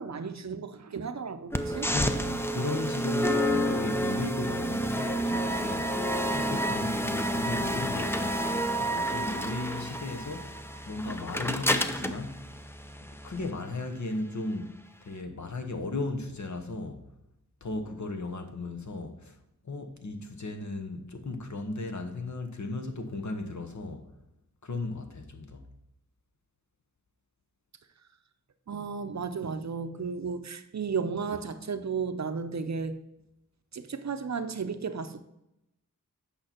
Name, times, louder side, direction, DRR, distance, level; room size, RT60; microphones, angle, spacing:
voice 1, 0.0-1.9 28.7-33.0 33.7-35.2, right 5 dB, 55° right, 0.7 m, -34 dB
sound 1, 1.5-13.5, equal, 5° left, 0.6 m, -29 dB
voice 2, 1.9-8.4 8.8-10.6 10.9-12.5 13.2-14.7 15.0-17.1 17.6-19.4 19.6-24.1 24.6-25.7, left 2 dB, 60° left, 1.1 m, -36 dB
8.7 x 5.6 x 4.3 m
wide cardioid pair, 65°, 33 cm